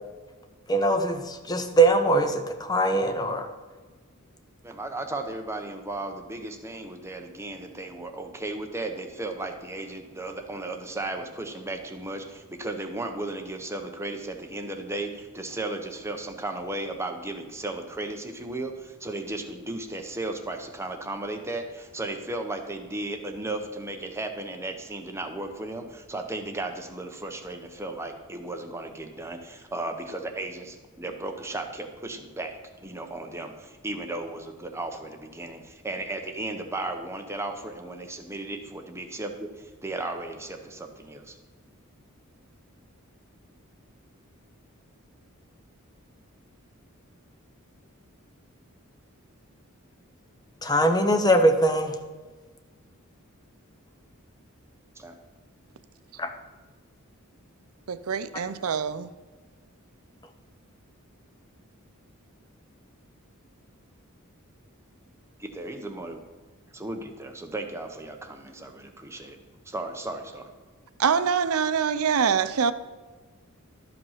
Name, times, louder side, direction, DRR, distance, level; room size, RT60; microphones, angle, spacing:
voice 1, 0.7-3.5 50.6-51.9 56.2-56.3, right 1 dB, 20° left, 0.8 m, -22 dB
voice 2, 4.6-41.4 55.0-55.2 65.4-66.2 66.7-69.4 69.7-70.5, right 2 dB, 15° right, 0.8 m, -35 dB
voice 3, 57.9-59.1 71.0-72.7, right 6 dB, 80° right, 0.5 m, -24 dB
12.0 x 5.3 x 5.6 m
head